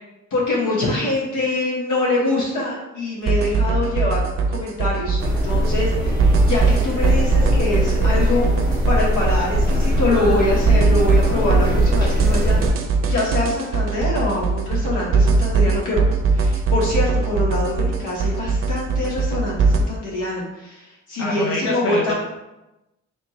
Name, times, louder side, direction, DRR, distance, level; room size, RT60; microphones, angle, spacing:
voice 1, 0.3-4.2 4.5-8.5 8.9-12.8 13.1-16.0 16.3-22.1, left 2 dB, 80° left, -4 dB, 1.5 m, -24 dB
sound 1, 3.3-19.8, right 4 dB, 45° right, 0.6 m, -20 dB
sound 2, 5.2-12.7, left 1 dB, 15° left, 1.5 m, -22 dB
voice 2, 21.2-22.1, left 2 dB, 45° left, -2 dB, 0.8 m, -25 dB
3.3 x 2.9 x 4.1 m, 0.96 s
cardioid pair, 90°, 30 cm